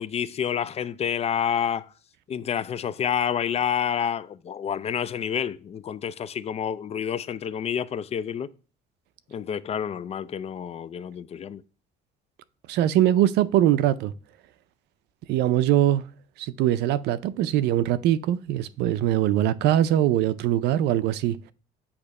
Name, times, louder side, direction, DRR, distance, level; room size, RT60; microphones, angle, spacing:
voice 1, 0.0-1.9 2.3-8.5 9.3-11.6, left 8 dB, 40° left, 0.4 m, -28 dB
voice 2, 12.7-14.1 15.3-16.1 16.4-21.5, right 12 dB, 85° right, 0.5 m, -22 dB
8.5 x 2.9 x 5.3 m
cardioid pair, 110°, 17 cm